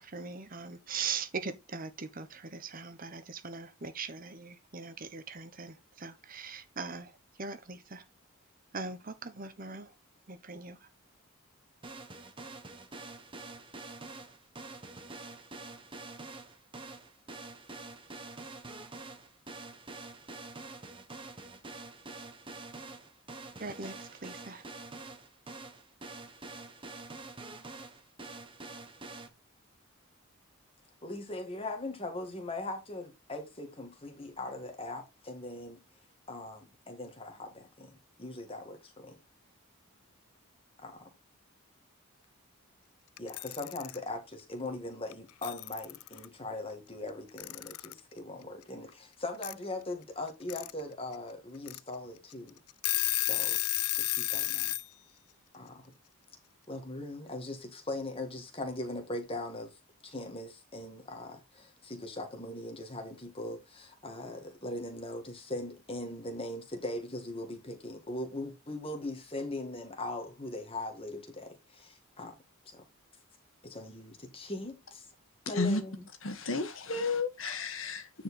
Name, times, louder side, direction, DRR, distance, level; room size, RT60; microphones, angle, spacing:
voice 1, 0.0-7.1 7.4-8.0 8.7-9.9 10.3-10.8 23.6-24.6, right 5 dB, 40° right, 1.0 m, -40 dB
sound 1, 11.8-29.3, right 3 dB, 25° right, 1.4 m, -46 dB
voice 2, 31.0-35.8 36.3-39.2 40.8-41.1 43.2-52.6 53.2-53.6 53.9-54.7 55.5-55.9 56.7-59.7 60.0-72.3 72.7-72.8 73.6-75.1 75.5-76.1, left 2 dB, 25° left, 2.0 m, -40 dB
Alarm / Clock, 43.2-44.0 45.1-45.2 45.4-46.3 47.4-48.0 49.4-49.5 50.3-50.7 51.1-51.2 51.7-51.8 52.3-52.4 52.7-54.9, left 19 dB, 80° left, 0.4 m, -32 dB
voice 3, 76.2-78.2, left 3 dB, 65° left, 1.7 m, -32 dB
9.6 x 4.8 x 4.2 m
head